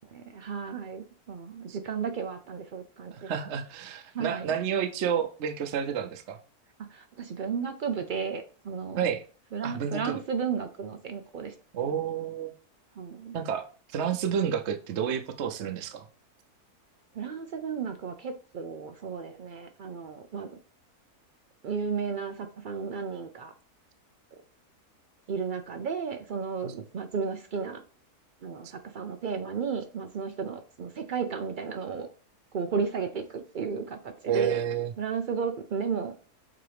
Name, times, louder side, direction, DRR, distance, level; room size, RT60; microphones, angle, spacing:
voice 1, 0.0-3.3 4.1-4.5 6.8-9.1 9.5-11.5 13.0-13.4 17.1-20.5 21.6-23.5 25.3-27.8 28.4-32.1 32.5-34.6 35.0-36.1, right 6 dB, 90° right, 6 dB, 0.4 m, -33 dB
voice 2, 3.1-6.4 9.0-9.2 9.6-10.2 11.7-12.5 13.3-13.7 13.9-16.0 26.6-26.7 34.3-34.9, right 8 dB, 60° right, 7 dB, 0.8 m, -30 dB
7.5 x 2.9 x 5.0 m, 0.39 s
omnidirectional pair, 1.7 m